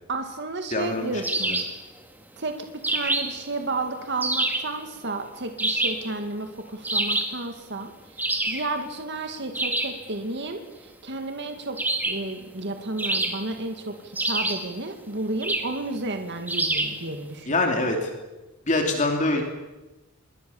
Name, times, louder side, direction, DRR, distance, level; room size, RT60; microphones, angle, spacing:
voice 1, 0.1-1.6 2.4-2.6 2.9-11.8 12.1-17.6, right 2 dB, 55° right, 5 dB, 2.2 m, -32 dB
voice 2, 0.7-1.2 1.5-1.6 17.5-18.1 18.7-19.4, left 2 dB, 35° left, 3 dB, 2.9 m, -24 dB
sound 1, 1.2-1.8 2.8-3.4 4.2-4.7 5.6-6.1 6.8-7.4 8.2-8.7 9.5-10.0 11.8-12.3 13.0-13.7 14.2-14.7 15.4-15.8 16.5-17.0, right 2 dB, 10° right, 2.4 m, -26 dB
26.5 x 22.0 x 7.2 m, 1.1 s
head